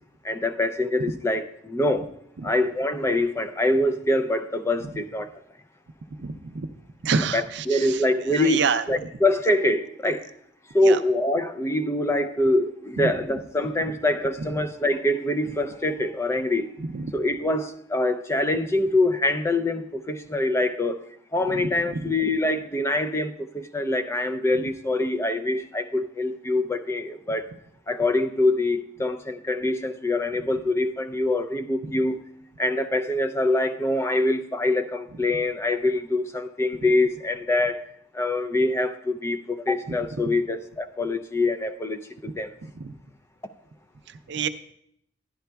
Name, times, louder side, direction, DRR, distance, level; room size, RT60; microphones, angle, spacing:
voice 1, 0.2-2.1 2.4-5.3 7.3-10.3 10.7-16.7 17.1-27.5 27.9-32.3 32.6-37.8 38.1-42.5, left 2 dB, 15° left, 0.3 m, -24 dB
voice 2, 6.2-6.7 7.0-8.8 10.8-11.0 13.0-13.1 16.8-17.1 21.6-21.7 22.1-22.2 31.8-31.9 42.7-42.9 44.1-44.5, right 5 dB, 65° right, 0.5 m, -28 dB
11.5 x 10.5 x 2.3 m
head